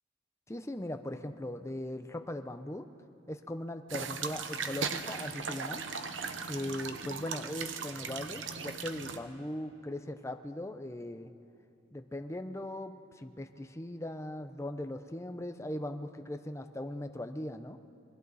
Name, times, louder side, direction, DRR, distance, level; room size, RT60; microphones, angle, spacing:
voice 1, 0.5-2.9 3.3-5.8 6.5-11.3 11.9-17.8, left 1 dB, 15° left, 7 dB, 0.7 m, -39 dB
sound 1, 3.9-9.2, right 5 dB, 85° right, 1.1 m, -38 dB
28.0 x 22.5 x 4.2 m, 2.7 s
head